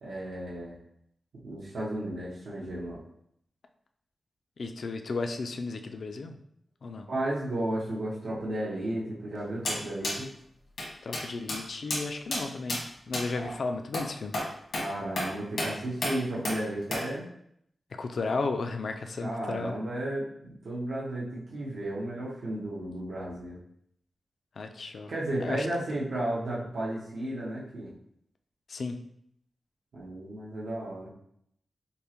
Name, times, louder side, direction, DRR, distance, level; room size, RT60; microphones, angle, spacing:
voice 1, 0.0-0.8 1.4-3.0 7.1-10.3 13.3-13.6 14.8-17.2 19.2-23.6 25.1-27.9 29.9-31.1, right 1 dB, 85° right, -7 dB, 0.9 m, -33 dB
voice 2, 4.6-6.4 6.8-7.1 11.0-14.4 17.9-19.8 24.6-25.1 25.4-25.7 28.7-29.0, left 3 dB, 60° left, 6 dB, 0.3 m, -34 dB
sound 1, 9.7-9.8 10.0-10.2 10.8-10.9 11.1-11.2 11.5-11.6 11.9-12.0 12.3-12.4 12.7-12.8 13.1-13.3 13.9-14.1 14.3-14.5 14.7-14.9 15.2-15.3 15.6-15.7 16.0-16.2 16.5-16.6 16.9-17.0, left 1 dB, 85° left, 1.2 m, -30 dB
5.2 x 2.1 x 2.9 m, 0.71 s
wide cardioid pair, 130°, 0 cm